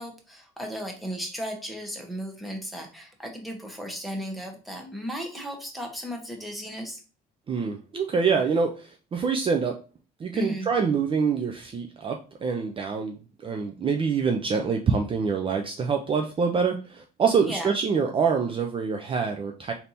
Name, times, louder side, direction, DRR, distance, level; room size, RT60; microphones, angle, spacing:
voice 1, 0.0-7.0 10.3-10.7 17.5-17.7, equal, ahead, 1 dB, 1.2 m, -35 dB
voice 2, 7.5-9.8 10.2-13.2 13.4-19.7, right 5 dB, 30° right, 4 dB, 0.5 m, -25 dB
3.4 x 2.8 x 4.1 m, 0.36 s
cardioid pair, 110°, 17 cm